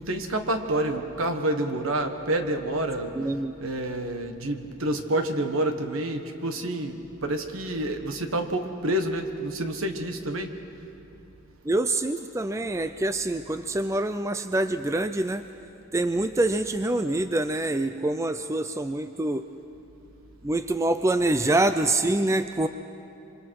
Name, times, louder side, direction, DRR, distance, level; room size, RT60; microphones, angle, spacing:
voice 1, 0.0-3.1 3.6-10.5, right 1 dB, 70° right, 6 dB, 1.5 m, -28 dB
voice 2, 3.2-3.5 11.7-15.4 15.9-19.4 20.4-22.7, right 2 dB, 15° right, 10 dB, 0.4 m, -25 dB
26.5 x 25.5 x 4.7 m, 2.8 s
head